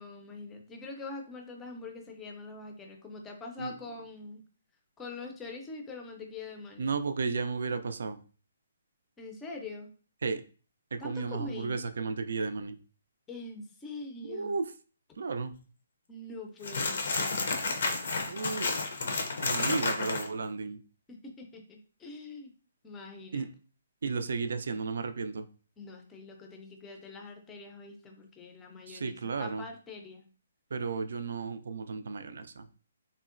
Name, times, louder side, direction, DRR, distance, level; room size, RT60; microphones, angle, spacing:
voice 1, 0.0-4.4 5.0-6.9 9.2-9.9 11.0-11.8 13.3-14.5 16.1-17.6 21.1-22.5 22.8-23.5 25.8-30.2, left 3 dB, 15° left, 3 dB, 0.5 m, -44 dB
voice 2, 6.8-8.2 10.2-10.4 10.9-12.8 14.3-14.6 15.2-15.5 18.3-18.8 19.4-20.8 23.3-23.5 24.0-25.5 28.9-29.6 30.7-32.7, right 4 dB, 70° right, 9 dB, 0.3 m, -33 dB
sound 1, 16.6-20.3, left 3 dB, 65° left, 0.5 m, -31 dB
3.6 x 2.0 x 2.4 m, 0.39 s
hypercardioid pair, 155°, 0 cm